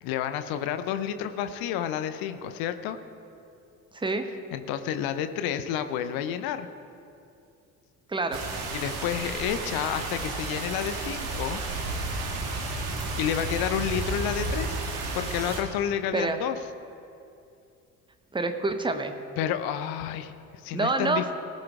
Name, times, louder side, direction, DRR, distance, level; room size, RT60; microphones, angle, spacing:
voice 1, 0.0-3.0 4.5-6.7 8.7-11.6 13.2-14.8 15.1-16.6 19.4-21.3, left 9 dB, 50° left, 10 dB, 0.8 m, -30 dB
voice 2, 3.9-4.2 8.1-8.4 16.1-16.4 18.3-19.1 20.7-21.3, right 3 dB, 10° right, 7 dB, 1.0 m, -27 dB
sound 1, 8.3-15.6, right 3 dB, 65° right, 1.6 m, -32 dB
19.0 x 11.5 x 2.4 m, 2.6 s
figure-of-eight pair, 50°, 45 cm